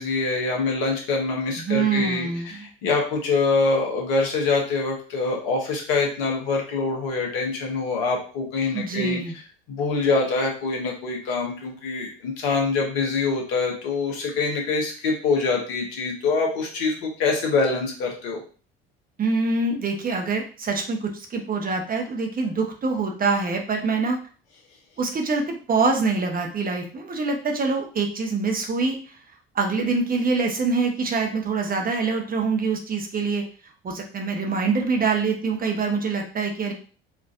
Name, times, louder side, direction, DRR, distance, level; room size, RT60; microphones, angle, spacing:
voice 1, 0.0-9.2 9.7-18.4, left 3 dB, 70° left, 1 dB, 1.2 m, -25 dB
voice 2, 1.5-2.7 8.7-9.4 19.2-24.2 25.0-29.0 29.5-33.4 33.8-36.7, right 4 dB, 30° right, 2 dB, 0.9 m, -25 dB
4.3 x 2.5 x 2.5 m, 0.39 s
hypercardioid pair, 60°, 29 cm